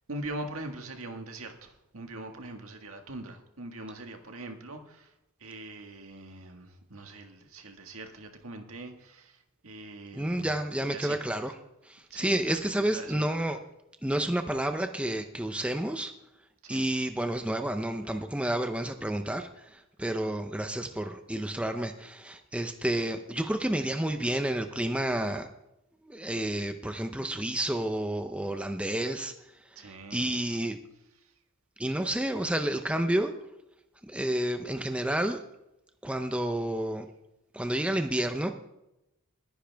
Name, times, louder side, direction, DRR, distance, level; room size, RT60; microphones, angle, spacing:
voice 1, 0.1-5.1 5.4-10.5 10.9-11.2 12.1-13.6 16.6-16.8 20.1-20.3 29.8-30.3 31.2-31.3, right 2 dB, 70° right, 5 dB, 1.7 m, -42 dB
voice 2, 10.1-11.5 11.9-13.6 14.0-16.1 16.7-25.5 26.1-29.3 29.8-30.8 31.8-33.3 34.0-35.4 36.0-37.1 37.5-38.5, right 1 dB, 5° right, 6 dB, 0.7 m, -30 dB
21.0 x 10.0 x 3.5 m, 0.88 s
head